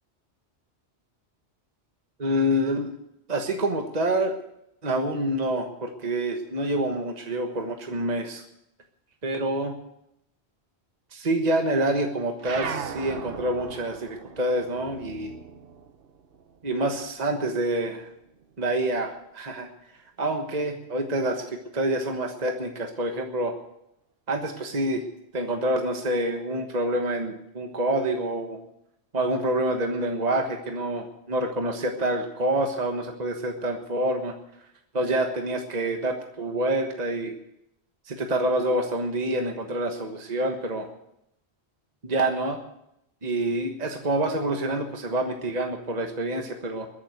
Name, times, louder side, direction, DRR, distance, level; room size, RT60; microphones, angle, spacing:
voice 1, 2.2-2.9 3.3-4.3 4.8-8.4 9.2-9.7 11.1-15.3 16.6-18.1 18.6-19.7 20.2-23.5 24.3-25.0 25.3-28.6 29.1-34.3 34.9-37.3 38.1-40.9 42.0-42.6 43.2-46.9, right 1 dB, 40° right, 4 dB, 1.5 m, -27 dB
sound 1, 12.4-17.3 17.6-19.0, right 6 dB, 60° right, 1.0 m, -39 dB
21.5 x 7.6 x 8.0 m, 0.81 s
omnidirectional pair, 1.1 m